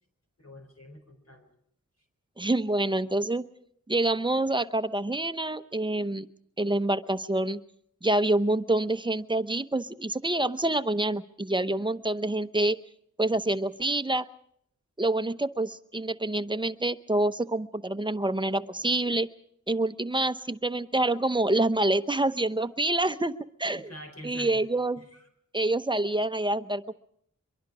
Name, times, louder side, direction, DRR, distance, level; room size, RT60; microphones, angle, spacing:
voice 1, 0.4-1.5 23.7-24.6 25.0-25.2, left 1 dB, 55° left, 4 dB, 4.6 m, -46 dB
voice 2, 2.4-3.4 3.9-6.3 6.6-7.6 8.0-12.8 13.2-14.2 15.0-19.3 19.7-23.9 24.2-25.0 25.5-26.9, right 2 dB, 15° right, 11 dB, 0.8 m, -27 dB
23.5 x 23.5 x 4.9 m, 0.68 s
wide cardioid pair, 75°, 31 cm